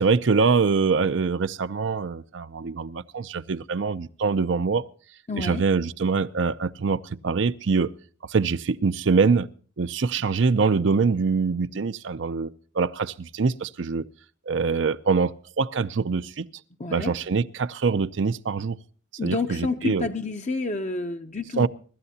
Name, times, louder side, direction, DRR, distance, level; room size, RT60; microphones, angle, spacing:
voice 1, 0.0-4.8 5.4-7.9 8.2-9.5 9.8-14.0 14.5-16.5 16.9-18.8 19.2-20.1 21.6-21.7, right 4 dB, 65° right, 0.5 m, -24 dB
voice 2, 5.3-5.6 16.8-17.1 19.2-21.7, left 3 dB, 35° left, 0.7 m, -29 dB
24.5 x 13.0 x 2.8 m
head